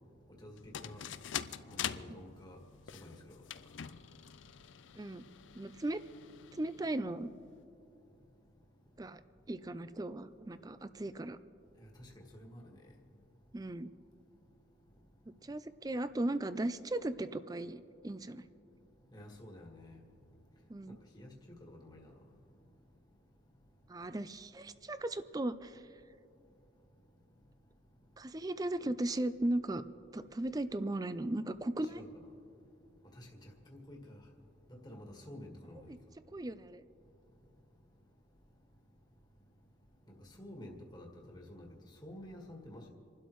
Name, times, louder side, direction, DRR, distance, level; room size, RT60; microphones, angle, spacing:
voice 1, 0.4-1.0 1.7-2.6 2.9-3.4 11.8-12.8 19.1-20.0 21.1-22.1 31.8-32.2 33.1-34.2 34.7-35.9 40.4-41.7 42.0-42.9, left 1 dB, 20° left, 1.7 m, -50 dB
sound 1, 0.6-7.6, left 9 dB, 80° left, 0.5 m, -45 dB
voice 2, 5.5-6.0 6.5-7.3 9.0-9.2 9.5-11.4 13.5-13.9 15.4-18.5 20.7-21.0 23.9-25.8 28.2-29.8 30.1-32.0 35.9-36.0 36.3-36.8, right 1 dB, 20° right, 0.4 m, -37 dB
28.5 x 12.0 x 3.1 m
head